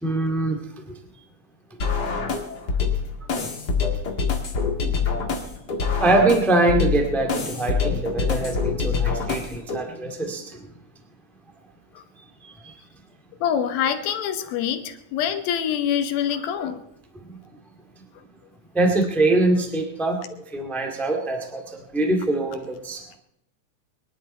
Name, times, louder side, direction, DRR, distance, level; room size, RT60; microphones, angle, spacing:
voice 1, 0.0-0.6 6.0-10.6 12.6-12.7 17.3-17.4 18.7-20.2 20.5-23.2, right 2 dB, ahead, 3 dB, 0.8 m, -23 dB
sound 1, 1.8-9.8, left 5 dB, 40° left, 1.7 m, -25 dB
voice 2, 13.4-16.8, left 9 dB, 80° left, 8 dB, 2.8 m, -25 dB
22.5 x 11.5 x 4.3 m, 0.76 s
omnidirectional pair, 4.3 m